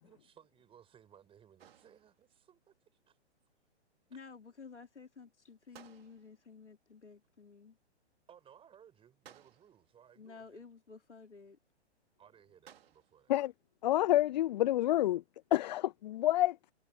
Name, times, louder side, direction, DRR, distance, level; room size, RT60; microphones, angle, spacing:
voice 1, 0.0-2.7 3.1-3.2 4.1-4.2 8.3-10.6 12.2-13.3, right 9 dB, 15° right, 5.3 m, -61 dB
sound 1, 1.6-2.5 5.7-6.6 9.2-10.0 12.7-13.3, right 9 dB, 60° right, 3.3 m, -60 dB
voice 2, 4.1-7.8 10.2-11.6, left 5 dB, 85° left, 4.0 m, -53 dB
voice 3, 13.8-16.7, left 14 dB, 40° left, 0.6 m, -29 dB
figure-of-eight pair, 125°, 34 cm